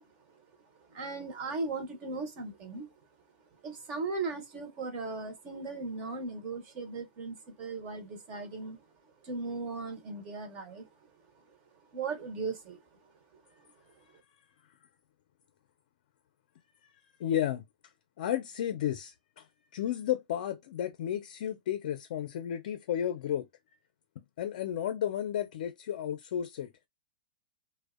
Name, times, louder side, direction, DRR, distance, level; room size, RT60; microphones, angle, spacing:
voice 1, 0.8-2.9 3.6-8.8 9.2-10.9 11.3-11.6 11.9-12.8 13.3-13.7, right 3 dB, 30° right, 0.6 m, -38 dB
voice 2, 17.2-17.6 18.2-19.5 19.7-23.5 24.4-26.7, left 10 dB, 60° left, 0.4 m, -32 dB
2.5 x 2.1 x 2.3 m
supercardioid pair, 160°, 5 cm